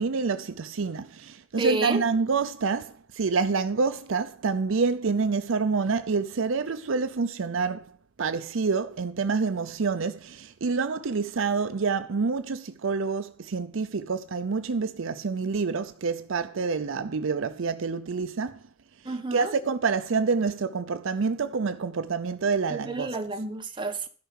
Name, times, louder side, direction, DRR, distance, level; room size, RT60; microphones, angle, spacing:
voice 1, 0.0-7.9 8.2-18.6 19.3-23.2, right 4 dB, 65° right, 0.6 m, -27 dB
voice 2, 1.6-2.0 19.0-19.5 22.7-24.1, right 3 dB, 25° right, 1.4 m, -30 dB
12.5 x 5.8 x 8.1 m
head